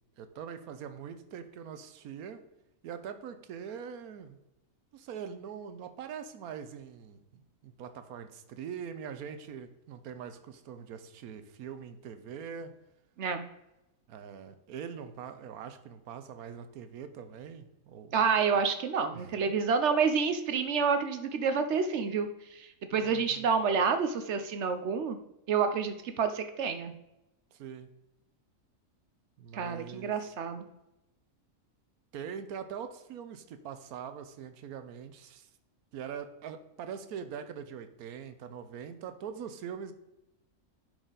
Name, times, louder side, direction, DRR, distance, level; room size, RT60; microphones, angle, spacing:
voice 1, 0.2-2.4 2.8-4.4 4.9-12.7 14.1-18.2 19.1-19.3 23.0-23.5 27.5-27.9 29.4-30.3 32.1-35.5 35.9-39.9, right 7 dB, 85° right, 9 dB, 1.2 m, -43 dB
voice 2, 18.1-25.2 25.5-26.9 29.5-30.7, right 5 dB, 65° right, 8 dB, 0.8 m, -29 dB
10.5 x 4.9 x 3.9 m, 0.91 s
omnidirectional pair, 1.5 m